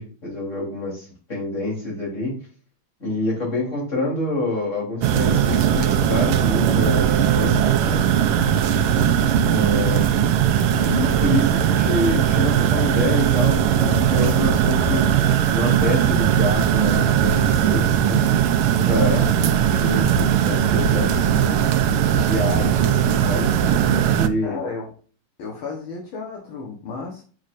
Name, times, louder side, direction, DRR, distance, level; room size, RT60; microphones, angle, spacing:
voice 1, 0.0-2.3 3.0-8.1 9.5-10.1 10.8-15.2 15.5-18.5 18.9-19.5 19.8-21.6 22.1-24.6, left 2 dB, 35° left, -4 dB, 3.9 m, -27 dB
sound 1, 5.0-24.3, right 9 dB, 85° right, 1.5 m, -19 dB
voice 2, 18.9-19.3 24.4-24.9 25.4-27.2, left 3 dB, 70° left, 0 dB, 2.0 m, -31 dB
6.4 x 6.3 x 2.5 m, 0.39 s
omnidirectional pair, 2.4 m